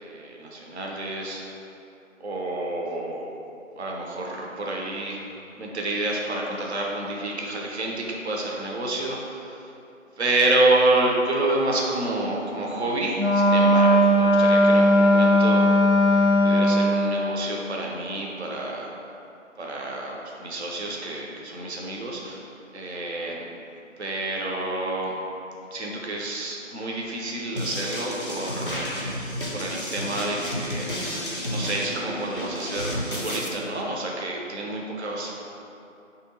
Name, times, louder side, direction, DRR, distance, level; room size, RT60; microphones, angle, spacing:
voice 1, 0.0-1.4 2.2-3.3 3.8-5.2 5.6-9.7 10.2-18.9 19.6-22.5 22.7-23.4 24.0-25.1 25.7-29.1 29.5-35.4, right 2 dB, 55° right, -2 dB, 0.6 m, -28 dB
Wind instrument woodwind instrument, 13.2-17.0, equal, 85° right, 1.1 m, -18 dB
sound 1, 27.6-33.5, equal, 45° left, 0.4 m, -31 dB
3.2 x 2.7 x 4.0 m, 2.7 s
figure-of-eight pair, 160°, 39 cm